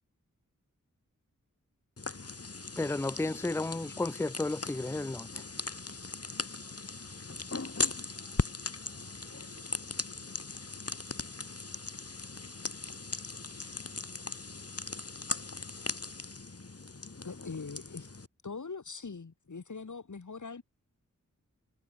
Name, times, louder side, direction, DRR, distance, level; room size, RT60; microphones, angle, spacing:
sound 1, 2.0-18.3, left 3 dB, 50° left, 3.4 m, -39 dB
voice 1, 2.8-5.4, left 2 dB, 10° left, 0.5 m, -33 dB
voice 2, 5.5-11.4 11.8-12.0 12.4-12.7 13.4-13.9, right 4 dB, 75° right, 3.6 m, -65 dB
voice 3, 17.2-18.1 18.4-20.6, left 4 dB, 65° left, 2.9 m, -42 dB
wide cardioid pair, 75°, 32 cm